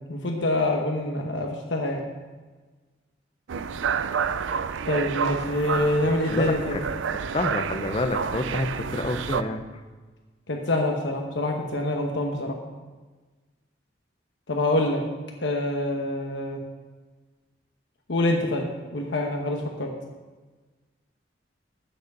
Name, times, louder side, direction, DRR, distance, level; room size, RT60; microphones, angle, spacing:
voice 1, 0.1-2.0 4.8-6.8 10.5-12.6 14.5-15.0 15.4-16.6 18.1-18.7 18.9-19.9, left 1 dB, 75° left, 1 dB, 1.1 m, -26 dB
sound 1, 3.5-9.4, right 6 dB, 85° right, 0.4 m, -29 dB
voice 2, 6.3-6.8 7.3-9.6, left 2 dB, 30° left, 6 dB, 0.7 m, -28 dB
7.9 x 6.6 x 6.7 m, 1.3 s
head